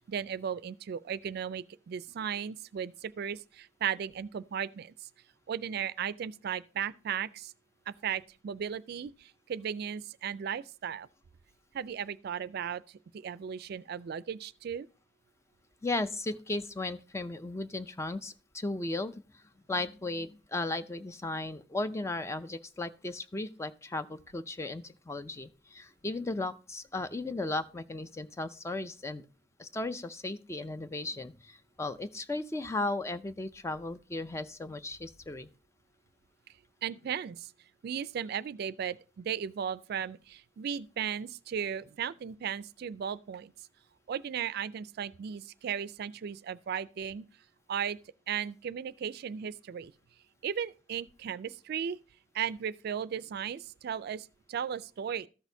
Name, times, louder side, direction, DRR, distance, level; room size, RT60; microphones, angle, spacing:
voice 1, 0.0-4.9 5.5-7.5 7.9-11.1 11.7-12.8 13.1-14.9 36.8-37.5 37.8-43.5 44.1-47.3 47.7-48.0 48.3-49.9 50.4-52.0 52.3-55.3, right 8 dB, 55° right, 0.3 m, -36 dB
voice 2, 15.8-19.1 19.7-29.2 29.6-35.5, left 2 dB, 15° left, 0.4 m, -36 dB
13.5 x 6.2 x 2.7 m
head